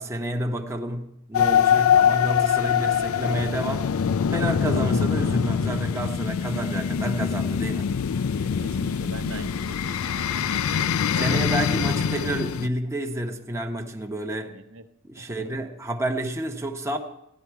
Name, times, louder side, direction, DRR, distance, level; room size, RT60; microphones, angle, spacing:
voice 1, 0.0-3.9 4.3-7.9 11.2-14.5 15.0-17.0, right 1 dB, 15° right, 3 dB, 0.9 m, -29 dB
sound 1, 1.3-12.7, left 7 dB, 75° left, 0.4 m, -23 dB
voice 2, 8.3-11.3 11.6-11.8 14.2-14.9 15.2-15.5, right 3 dB, 65° right, 9 dB, 0.9 m, -43 dB
14.5 x 11.0 x 4.7 m, 0.83 s
head